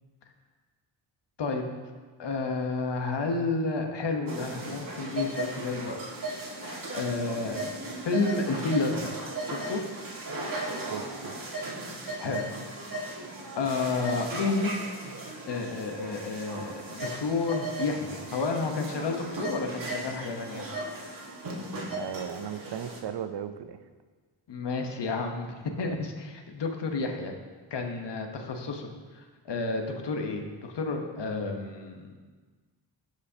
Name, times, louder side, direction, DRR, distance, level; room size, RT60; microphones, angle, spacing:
voice 1, 2.2-6.0 6.2-7.6 8.0-9.8 12.2-12.5 12.9-13.1 13.6-14.7 15.5-20.7 24.5-27.3 27.7-28.9 29.4-32.2, left 3 dB, 65° left, 4 dB, 1.1 m, -31 dB
sound 1, 4.3-23.0, right 2 dB, 45° right, 1.8 m, -37 dB
voice 2, 10.9-11.4 21.9-23.8, right 9 dB, 60° right, 10 dB, 0.6 m, -36 dB
14.0 x 5.0 x 2.8 m, 1.4 s
cardioid pair, 60°, 46 cm